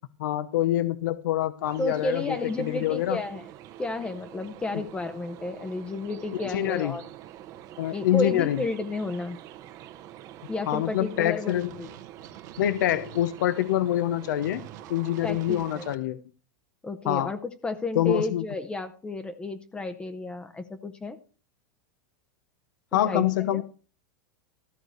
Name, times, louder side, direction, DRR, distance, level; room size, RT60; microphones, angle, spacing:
voice 1, 0.2-3.2 6.3-6.9 7.8-8.6 10.7-11.7 12.6-14.6 14.9-16.2 17.1-17.3 17.9-18.4 22.9-23.6, left 13 dB, 80° left, 14 dB, 0.9 m, -26 dB
sound 1, 1.6-16.0, right 12 dB, 35° right, 0.9 m, -46 dB
voice 2, 1.8-3.5 3.8-7.0 7.9-9.4 10.5-11.9 15.2-15.9 16.8-21.2 22.9-23.6, left 2 dB, 10° left, 8 dB, 0.8 m, -32 dB
sound 2, 11.5-13.2 14.4-16.0, right 11 dB, 70° right, 1.4 m, -47 dB
14.5 x 4.8 x 7.9 m, 0.38 s
supercardioid pair, 155°, 10 cm